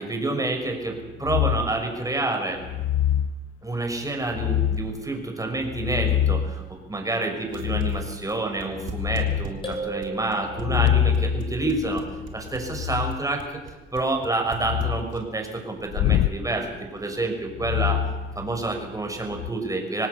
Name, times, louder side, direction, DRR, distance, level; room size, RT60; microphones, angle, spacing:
voice 1, 0.0-2.6 3.6-12.1 12.3-13.6 13.9-18.0 18.4-20.1, right 2 dB, 15° right, 3 dB, 5.5 m, -28 dB
sound 1, 1.2-1.8 2.6-3.3 4.3-5.0 5.6-6.6 7.5-8.2 8.6-9.5 10.5-13.2 14.5-15.1 15.9-16.4 17.5-18.8 19.2-19.5, left 10 dB, 85° left, 0.6 m, -25 dB
sound 2, 7.5-15.4, right 8 dB, 80° right, 2.7 m, -39 dB
sound 3, 9.6-11.2, right 2 dB, 25° left, 7.2 m, -35 dB
25.5 x 18.0 x 6.7 m, 1.2 s
cardioid pair, 90°, 20 cm